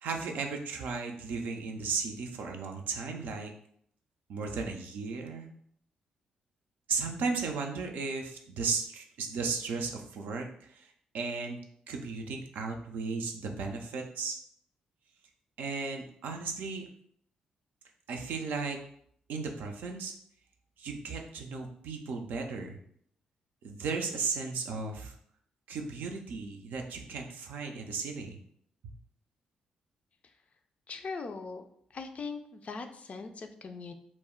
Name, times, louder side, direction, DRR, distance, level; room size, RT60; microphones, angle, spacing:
voice 1, 0.0-3.5 4.3-5.5 6.9-11.6 11.9-14.4 15.6-16.9 18.1-18.8 19.3-20.1 20.8-22.8 23.6-25.1 25.7-28.4, right 4 dB, 75° right, 3 dB, 0.4 m, -35 dB
voice 2, 30.9-31.6 31.9-33.9, left 4 dB, 50° left, 6 dB, 0.3 m, -40 dB
2.1 x 2.0 x 3.6 m, 0.66 s
hypercardioid pair, 50°, 3 cm